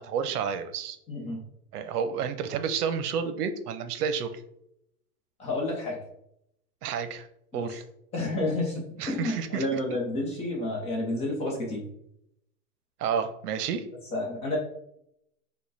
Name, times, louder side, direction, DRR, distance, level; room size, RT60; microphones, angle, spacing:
voice 1, 0.0-1.0 1.7-4.4 6.8-7.3 7.5-7.8 9.0-10.0 13.0-13.8, right 7 dB, 80° right, 9 dB, 0.8 m, -30 dB
voice 2, 1.1-1.4 5.4-6.0 7.5-7.7 8.1-11.9 14.1-14.6, left 2 dB, 15° left, -2 dB, 0.6 m, -30 dB
5.3 x 2.2 x 4.0 m, 0.77 s
supercardioid pair, 160°, 45 cm